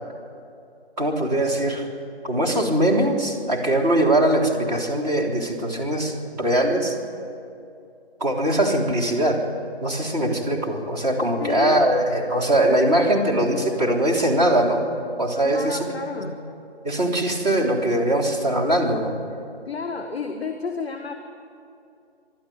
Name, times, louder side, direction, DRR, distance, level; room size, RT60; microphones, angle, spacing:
voice 1, 1.0-1.8 2.2-7.0 8.2-9.5 9.8-14.8 15.2-16.2 16.8-19.1, right 1 dB, 40° right, -1 dB, 3.4 m, -21 dB
voice 2, 11.4-11.8 15.4-16.4 19.6-21.1, left 5 dB, 5° right, 2 dB, 0.6 m, -31 dB
26.0 x 12.0 x 9.3 m, 2.6 s
figure-of-eight pair, 160°, 32 cm